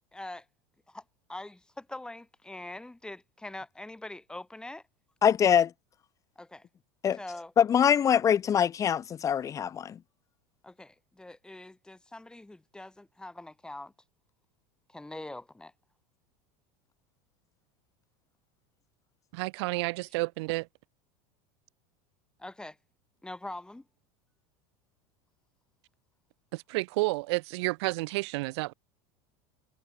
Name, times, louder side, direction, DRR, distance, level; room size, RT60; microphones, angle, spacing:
voice 1, 0.1-0.5 0.9-1.0 1.3-4.8 6.4-6.7 7.1-7.5 10.6-13.9 14.9-15.7 22.4-22.8 23.2-23.9, left 2 dB, 5° left, 4.6 m, -43 dB
voice 2, 5.2-5.7 7.0-7.2 7.6-10.0, left 8 dB, 25° left, 0.6 m, -23 dB
voice 3, 19.3-20.7 26.5-28.7, right 24 dB, 75° right, 1.1 m, -30 dB
supercardioid pair, 140°, 14 cm